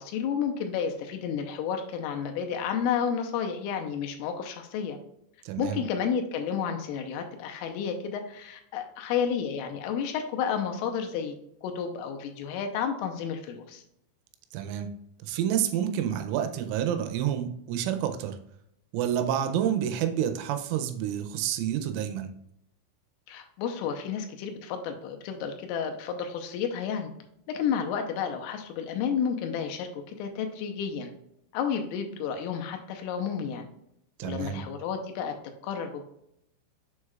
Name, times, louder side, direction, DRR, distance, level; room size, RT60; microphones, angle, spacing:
voice 1, 0.0-5.0 5.6-11.3 11.6-13.8 23.3-27.1 27.5-31.1 31.5-33.7 34.2-35.3 35.6-36.0, left 7 dB, 90° left, 4 dB, 3.3 m, -31 dB
voice 2, 5.4-5.8 14.5-14.9 15.2-18.4 18.9-22.3 34.2-34.7, right 10 dB, 80° right, 7 dB, 3.0 m, -29 dB
7.3 x 6.4 x 2.4 m, 0.76 s
omnidirectional pair, 5.9 m